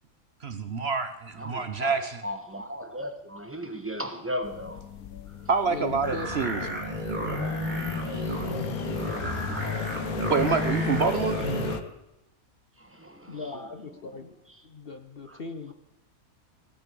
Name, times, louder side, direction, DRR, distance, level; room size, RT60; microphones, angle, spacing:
voice 1, 0.4-2.2 5.5-6.8 10.3-11.4, right 5 dB, 50° right, 1.1 m, -27 dB
voice 2, 1.4-4.8 5.1-5.3 8.1-9.3 11.6-11.7 12.8-13.4 15.3-15.4, equal, 10° right, 1.5 m, -37 dB
sound 1, 4.4-11.8, left 9 dB, 85° left, 1.3 m, -37 dB
voice 3, 5.7-6.7 13.3-14.3 14.6-15.7, left 3 dB, 45° left, 1.0 m, -38 dB
sound 2, 6.0-11.8, equal, 30° right, 3.5 m, -31 dB
16.5 x 9.5 x 6.9 m
omnidirectional pair, 1.5 m